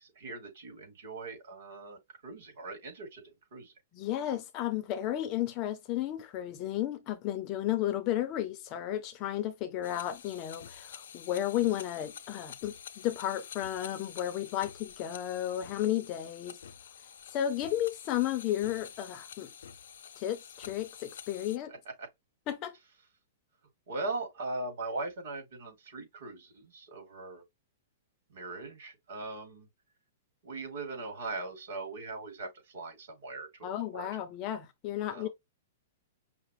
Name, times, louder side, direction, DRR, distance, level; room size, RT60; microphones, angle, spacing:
voice 1, 0.0-3.2 3.5-3.7 21.7-22.1 23.9-27.4 28.3-29.7 30.4-34.1 35.1-35.3, right 3 dB, 60° right, 2.9 m, -40 dB
voice 2, 3.9-16.6 17.3-19.5 20.2-21.7 22.5-22.7 33.6-35.3, left 12 dB, 25° left, 0.5 m, -33 dB
sound 1, 9.8-21.6, left 8 dB, 75° left, 0.6 m, -48 dB
5.6 x 2.0 x 3.2 m
hypercardioid pair, 170°, 0 cm